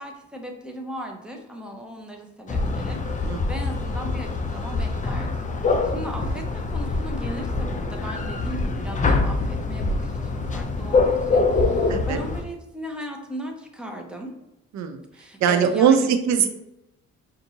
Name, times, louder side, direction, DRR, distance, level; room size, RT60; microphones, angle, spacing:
voice 1, 0.0-14.3 15.1-16.1, equal, 5° right, 1 dB, 0.8 m, -37 dB
sound 1, 2.5-12.4, left 3 dB, 25° left, 0.4 m, -24 dB
voice 2, 11.9-12.2 14.7-15.0 15.4-16.5, right 7 dB, 65° right, 7 dB, 0.6 m, -21 dB
5.3 x 2.5 x 2.8 m, 0.90 s
cardioid pair, 90°, 30 cm